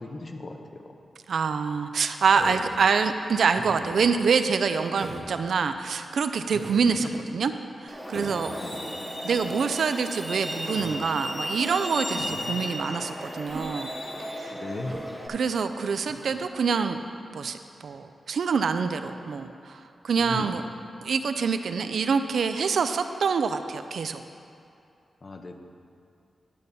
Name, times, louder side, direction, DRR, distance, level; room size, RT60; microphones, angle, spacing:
voice 1, 0.0-0.8 6.8-7.2 8.4-9.1 12.2-12.8 14.6-15.1 20.2-20.5 25.2-25.6, left 2 dB, 35° left, 4 dB, 0.6 m, -38 dB
voice 2, 1.3-7.5 7.8-8.6 9.2-13.9 14.2-14.5 15.3-17.0 17.3-20.6 21.0-24.2, right 5 dB, 75° right, 9 dB, 0.4 m, -26 dB
Human voice, 2.3-2.8 3.6-4.1 5.0-5.3 6.5-6.9 8.1-8.5 9.3-9.6 10.7-11.0 12.1-12.4 13.5-13.7 14.8-15.1 16.1-16.4, right 2 dB, 35° right, 1.2 m, -39 dB
Truck, 7.9-15.3, equal, 5° left, 0.9 m, -35 dB
11.0 x 4.1 x 6.7 m, 2.5 s
wide cardioid pair, 145°, 0 cm